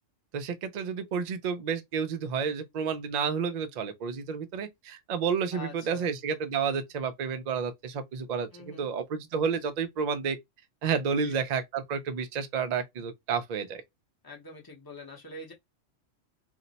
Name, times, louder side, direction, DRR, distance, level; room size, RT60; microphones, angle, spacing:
voice 1, 0.3-10.4 10.8-13.8, right 6 dB, 60° right, 0.4 m, -30 dB
voice 2, 5.5-6.1 8.5-8.9 11.2-11.3 14.2-15.5, left 3 dB, 20° left, 0.7 m, -44 dB
2.5 x 2.1 x 3.9 m
omnidirectional pair, 1.3 m